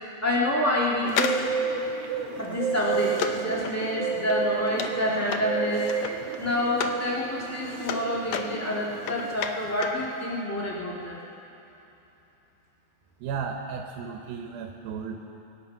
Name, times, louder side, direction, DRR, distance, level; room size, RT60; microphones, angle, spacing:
voice 1, 0.2-1.5 2.4-5.8 6.4-11.2, left 1 dB, 20° left, -5 dB, 0.4 m, -28 dB
Bird, 1.0-9.3, right 6 dB, 75° right, 2.1 m, -32 dB
sound 1, 1.1-7.1 7.4-10.1 10.3-10.4, left 7 dB, 85° left, 1.5 m, -34 dB
voice 2, 13.2-15.2, right 6 dB, 90° right, 2 dB, 2.7 m, -34 dB
24.0 x 10.0 x 5.8 m, 3.0 s
omnidirectional pair, 4.1 m